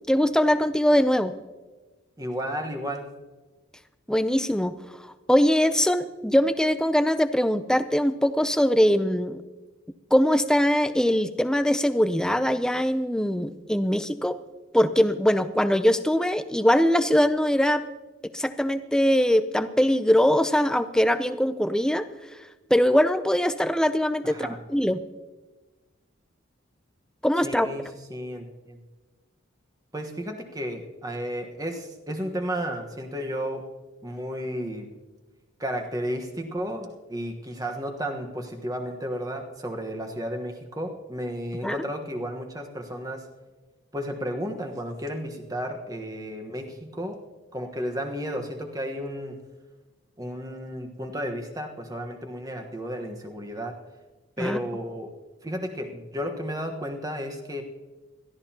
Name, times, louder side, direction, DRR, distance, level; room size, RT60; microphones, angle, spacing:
voice 1, 0.1-1.3 4.1-4.8 5.3-9.4 10.1-14.4 14.7-17.8 18.2-22.1 22.3-22.4 22.7-25.0 27.2-27.7 41.6-41.9 54.4-54.6, equal, 5° left, 11 dB, 0.5 m, -22 dB
voice 2, 2.2-3.1 24.2-24.6 27.4-27.8 28.1-28.8 29.9-33.7 34.0-34.9 35.6-43.2 43.9-47.2 47.5-49.4 50.2-53.8 54.4-55.1 55.4-57.6, equal, 15° right, 4 dB, 1.3 m, -33 dB
21.5 x 14.5 x 2.9 m, 1.2 s
head